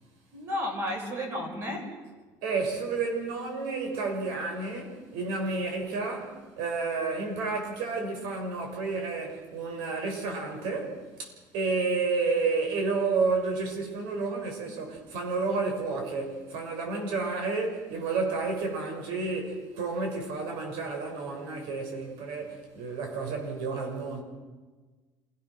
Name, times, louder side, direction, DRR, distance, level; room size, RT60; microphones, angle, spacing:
voice 1, 0.3-2.0, left 1 dB, 35° right, 5.5 m, -32 dB
voice 2, 2.4-24.2, right 4 dB, 85° right, 6.0 m, -31 dB
27.5 x 18.0 x 6.4 m
cardioid pair, 175°, 8 cm